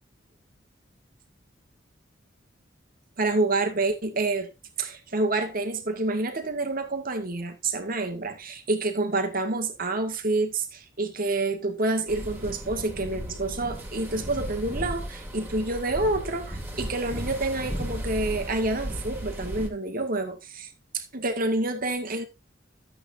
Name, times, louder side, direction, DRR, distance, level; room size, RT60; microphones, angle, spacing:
voice 1, 3.2-4.5 4.8-20.7 20.9-22.3, right 2 dB, 45° right, 2.0 m, -28 dB
sound 1, 12.1-19.7, equal, 10° right, 2.5 m, -35 dB
13.0 x 8.3 x 2.6 m
head